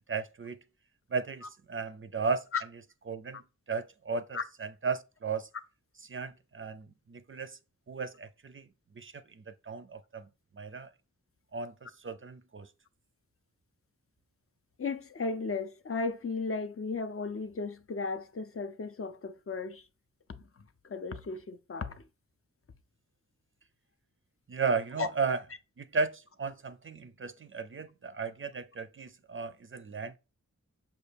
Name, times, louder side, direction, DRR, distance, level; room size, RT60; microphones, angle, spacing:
voice 1, 0.1-0.6 1.1-3.4 3.7-5.5 6.0-7.6 7.9-8.7 9.0-10.3 10.5-10.9 11.5-12.7 24.5-25.5 25.8-30.2, right 4 dB, 40° right, 0.4 m, -35 dB
voice 2, 14.8-19.8 20.8-22.0 25.0-25.1, left 4 dB, 45° left, 0.4 m, -35 dB
5.6 x 2.3 x 3.3 m
wide cardioid pair, 60°, 32 cm